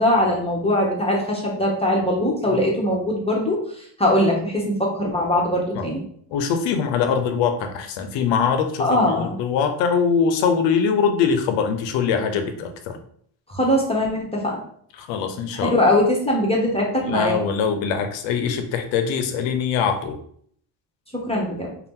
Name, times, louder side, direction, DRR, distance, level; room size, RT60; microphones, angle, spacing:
voice 1, 0.0-6.0 8.8-9.3 13.5-14.6 15.5-17.4 21.1-21.7, left 1 dB, 15° left, -3 dB, 0.8 m, -21 dB
voice 2, 6.3-13.0 15.0-15.7 17.0-20.2, left 6 dB, 70° left, 7 dB, 0.7 m, -22 dB
2.7 x 2.0 x 3.6 m, 0.63 s
supercardioid pair, 75°, 46 cm